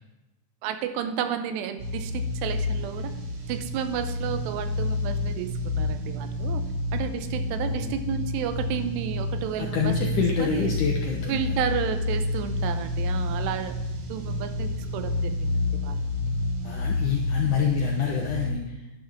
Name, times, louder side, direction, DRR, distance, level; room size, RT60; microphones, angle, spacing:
voice 1, 0.6-3.1 3.5-6.6 6.9-10.0 10.4-10.7 11.3-13.7 14.1-16.0, right 9 dB, 90° right, 9 dB, 2.8 m, -32 dB
sound 1, 1.8-18.5, left 2 dB, 60° right, 2.2 m, -29 dB
voice 2, 7.6-8.0 9.6-11.5 16.6-18.8, left 7 dB, 80° left, 0 dB, 1.8 m, -27 dB
11.0 x 10.5 x 3.5 m, 1.0 s
omnidirectional pair, 4.8 m